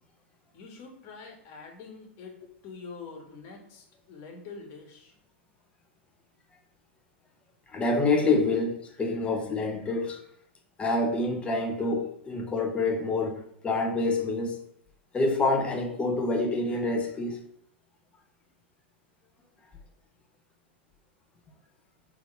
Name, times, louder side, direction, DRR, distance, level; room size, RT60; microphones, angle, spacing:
voice 1, 0.5-2.4 2.6-5.1, left 4 dB, 45° left, 1.7 m, -45 dB
voice 2, 7.7-10.2 10.8-14.6 15.1-17.4, left 3 dB, 20° left, 1.0 m, -27 dB
5.8 x 3.6 x 4.5 m
hypercardioid pair, 115°, 6 cm